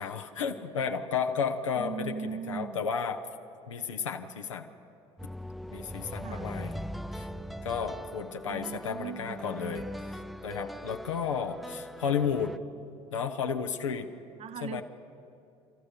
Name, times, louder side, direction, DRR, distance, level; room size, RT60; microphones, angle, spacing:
voice 1, 0.0-2.2 2.5-3.2 3.7-4.7 5.7-6.8 7.1-7.3 7.6-12.5 13.1-14.1 14.6-14.8, left 6 dB, 80° left, 5 dB, 1.0 m, -32 dB
voice 2, 1.7-2.8 6.2-6.5 8.5-9.4 14.4-14.8, right 6 dB, 45° right, 13 dB, 0.8 m, -39 dB
sound 1, 5.2-12.6, equal, ahead, 0.7 m, -40 dB
29.0 x 14.0 x 6.7 m, 2.7 s
figure-of-eight pair, 55°, 16 cm